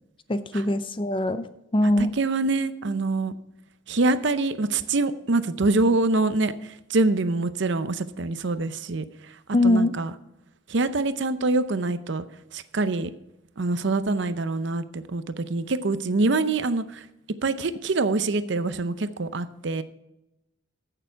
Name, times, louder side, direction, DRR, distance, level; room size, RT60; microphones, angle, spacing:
voice 1, 0.3-2.1 9.5-10.0, left 1 dB, 25° left, 12 dB, 0.5 m, -22 dB
voice 2, 2.0-3.3 3.9-6.5 6.9-9.0 9.6-10.1 10.7-12.2 12.5-13.1 13.6-17.0 17.4-19.8, right 3 dB, 60° right, 12 dB, 0.6 m, -25 dB
15.0 x 6.8 x 4.6 m, 0.89 s
head